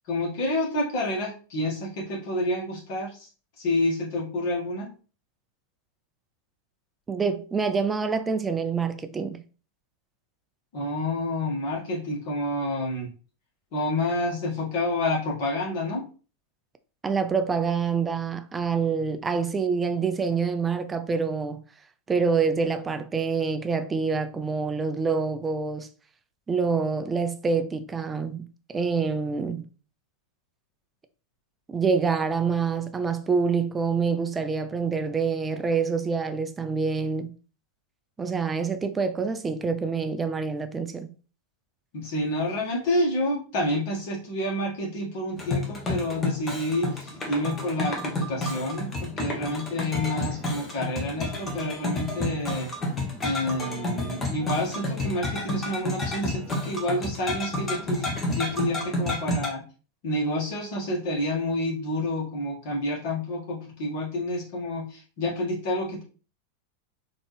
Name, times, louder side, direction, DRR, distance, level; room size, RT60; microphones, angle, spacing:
voice 1, 0.1-3.3 3.6-4.9 10.7-13.1 13.7-16.0 41.9-52.7 53.2-59.6 60.0-66.0, left 1 dB, 45° left, 1.7 m, -29 dB
voice 2, 7.1-9.4 17.0-21.6 22.1-25.9 26.5-29.7 31.7-37.3 38.2-41.1, right 5 dB, 15° right, 0.4 m, -26 dB
sound 1, 45.4-59.5, left 1 dB, 20° left, 1.1 m, -30 dB
4.1 x 3.0 x 3.2 m
figure-of-eight pair, 90°, 0 cm